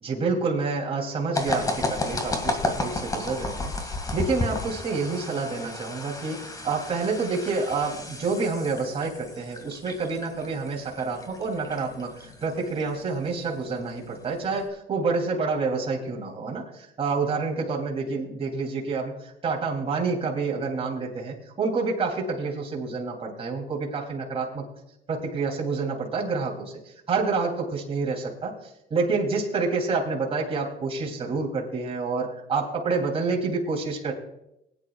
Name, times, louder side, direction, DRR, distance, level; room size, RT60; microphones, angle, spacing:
voice 1, 0.0-3.7 4.1-24.6 25.1-26.7 27.1-34.1, right 4 dB, 35° right, -2 dB, 3.2 m, -28 dB
sound 1, 1.3-14.7, left 2 dB, 20° left, 2.1 m, -33 dB
20.0 x 9.9 x 2.4 m, 0.83 s
cardioid pair, 110°, 17 cm